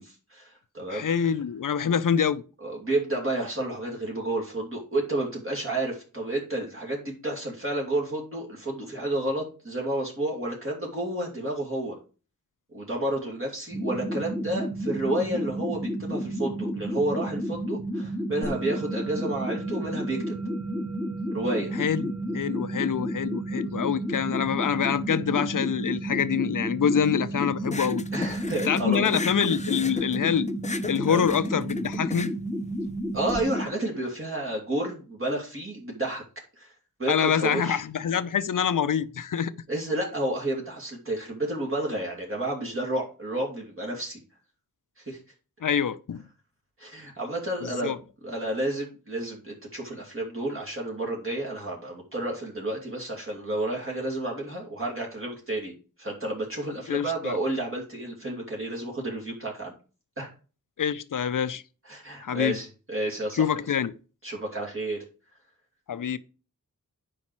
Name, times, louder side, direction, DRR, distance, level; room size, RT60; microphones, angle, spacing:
voice 1, 0.0-1.0 2.6-12.0 12.7-20.4 21.3-21.7 28.1-29.1 29.7-30.0 31.1-31.2 33.1-36.2 36.6-36.7 37.0-37.8 39.7-44.2 45.0-45.2 46.8-48.0 48.2-59.7 60.2-60.3 61.8-63.5 64.2-65.0, right 1 dB, 35° right, 2.7 m, -31 dB
voice 2, 0.9-2.4 21.8-28.0 28.7-30.5 30.9-32.3 37.1-39.5 45.6-46.2 47.6-48.0 56.9-57.4 60.8-61.6 62.2-62.6 63.4-64.0 65.9-66.2, left 8 dB, 65° left, 0.7 m, -26 dB
sound 1, 13.7-33.7, right 1 dB, 5° left, 1.1 m, -31 dB
Musical instrument, 18.4-29.0, right 3 dB, 75° right, 3.6 m, -49 dB
sound 2, 27.6-33.4, left 3 dB, 20° left, 0.6 m, -37 dB
9.9 x 5.0 x 4.6 m
wide cardioid pair, 105°, 35 cm